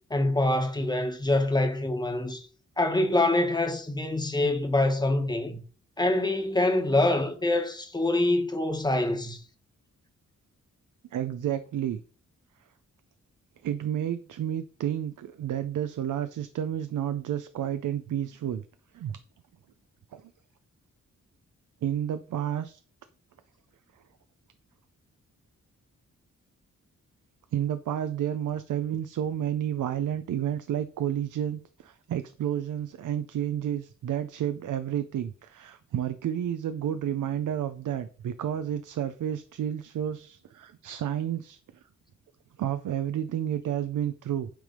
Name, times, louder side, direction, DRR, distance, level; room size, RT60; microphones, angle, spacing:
voice 1, 0.1-2.5 2.8-5.6 6.0-9.4, left 2 dB, 15° left, 1.2 m, -25 dB
voice 2, 11.1-12.0 13.6-18.6 18.9-19.2 20.1-20.2 21.8-22.8 27.5-41.6 42.6-44.5, right 10 dB, 80° right, 0.6 m, -31 dB
9.1 x 3.3 x 5.2 m
wide cardioid pair, 115°, 31 cm